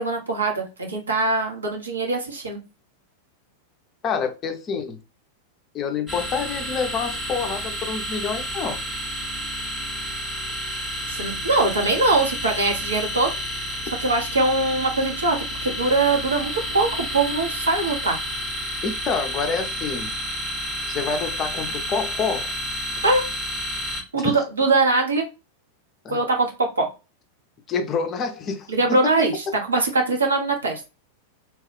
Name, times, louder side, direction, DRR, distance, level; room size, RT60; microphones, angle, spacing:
voice 1, 0.0-2.6 11.1-13.3 13.7-15.4 15.6-18.2 23.0-23.3 24.1-25.3 26.1-26.9 28.7-30.8, right 3 dB, 75° right, 0.8 m, -22 dB
voice 2, 4.0-5.0 5.7-8.8 18.8-20.1 20.9-22.5 24.1-24.4 26.0-26.2 27.7-28.7 29.0-29.1, left 5 dB, 30° left, 0.5 m, -27 dB
sound 1, 6.1-24.0, equal, 15° right, 0.8 m, -30 dB
2.9 x 2.3 x 3.2 m
figure-of-eight pair, 90°, 0 cm